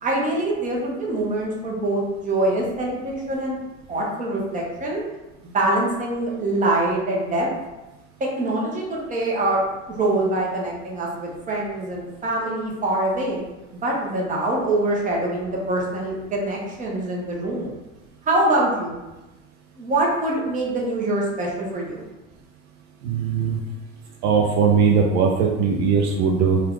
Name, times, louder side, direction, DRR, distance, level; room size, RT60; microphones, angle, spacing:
voice 1, 0.0-3.6 3.9-5.0 5.4-7.5 8.2-9.6 9.9-13.4 13.8-17.7 18.3-19.0 19.8-22.0, right 2 dB, 20° right, -3 dB, 0.9 m, -24 dB
voice 2, 23.0-23.6 24.2-26.6, right 6 dB, 60° right, 0 dB, 0.6 m, -19 dB
2.8 x 2.5 x 3.5 m, 1.0 s
hypercardioid pair, 100°, 38 cm